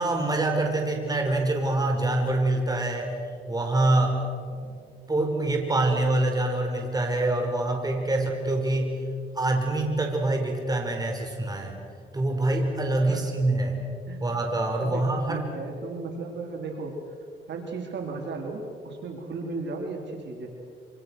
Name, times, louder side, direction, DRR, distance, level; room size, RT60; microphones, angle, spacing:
voice 1, 0.0-3.2 3.5-4.2 4.5-4.7 5.1-9.0 9.4-11.8 12.1-13.8 14.2-15.4, right 2 dB, 20° right, 2 dB, 5.5 m, -25 dB
voice 2, 14.8-17.0 17.5-20.5, right 3 dB, 60° right, 2 dB, 4.2 m, -35 dB
27.5 x 27.0 x 6.5 m, 2.3 s
cardioid pair, 90°, 20 cm